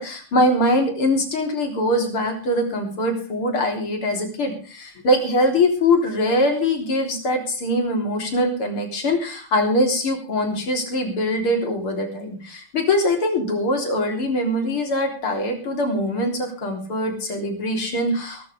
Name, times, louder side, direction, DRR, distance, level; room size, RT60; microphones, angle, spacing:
voice 1, 0.0-18.5, left 1 dB, 85° left, 3 dB, 4.4 m, -22 dB
21.5 x 13.0 x 3.4 m, 0.38 s
omnidirectional pair, 2.3 m